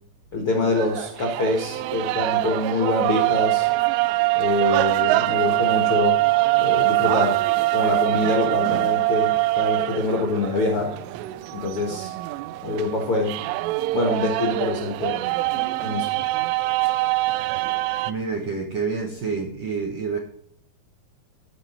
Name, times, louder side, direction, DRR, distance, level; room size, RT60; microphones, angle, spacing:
voice 1, 0.3-3.7 4.3-6.2 6.6-7.4 7.7-10.9 11.5-12.1 12.6-13.3 13.9-15.2 15.8-16.1, left 2 dB, 60° left, 1 dB, 1.4 m, -25 dB
sound 1, 0.8-18.1, right 19 dB, 85° right, 2.7 m, -23 dB
voice 2, 18.1-20.2, right 5 dB, 65° right, 0 dB, 1.7 m, -28 dB
15.0 x 6.0 x 4.4 m, 0.65 s
omnidirectional pair, 4.9 m